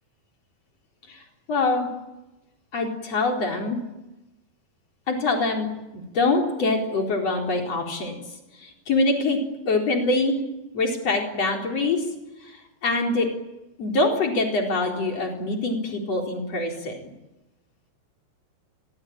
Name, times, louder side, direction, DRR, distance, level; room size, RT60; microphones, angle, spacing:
voice 1, 1.5-1.9 2.7-3.8 5.1-8.1 8.6-9.4 9.7-10.4 10.7-12.0 12.4-13.3 13.8-16.9, left 3 dB, 35° left, 1 dB, 5.0 m, -24 dB
28.5 x 23.0 x 8.9 m, 1.0 s
omnidirectional pair, 5.1 m